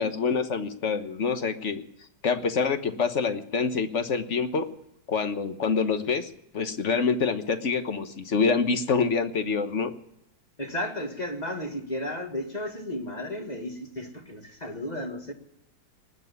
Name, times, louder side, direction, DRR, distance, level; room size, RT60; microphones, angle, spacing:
voice 1, 0.0-1.8 2.2-4.7 5.1-9.9, left 5 dB, 45° left, 9 dB, 1.4 m, -26 dB
voice 2, 10.6-15.3, left 1 dB, 25° left, 5 dB, 1.7 m, -33 dB
19.5 x 7.7 x 9.6 m, 0.80 s
omnidirectional pair, 1.9 m